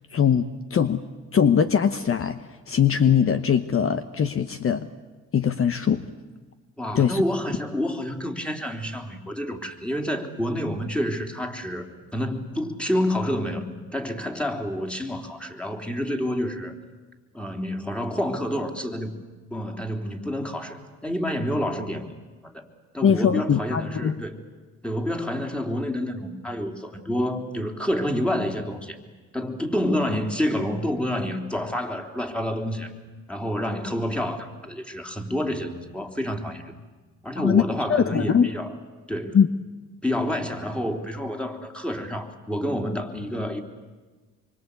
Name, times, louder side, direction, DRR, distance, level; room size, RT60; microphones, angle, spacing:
voice 1, 0.1-1.0 1.3-4.9 5.3-6.0 6.9-7.2 23.0-24.2 37.4-37.6 37.9-38.5 39.3-39.5, left 7 dB, 45° left, 11 dB, 1.1 m, -21 dB
voice 2, 6.8-11.9 12.1-16.7 17.3-19.1 19.5-22.1 22.4-22.7 22.9-24.4 24.8-29.0 29.3-32.9 33.3-36.6 37.2-38.7 39.1-39.4 40.0-43.6, equal, 5° left, 4 dB, 3.4 m, -28 dB
25.5 x 24.0 x 8.4 m, 1.3 s
cardioid pair, 90°, 30 cm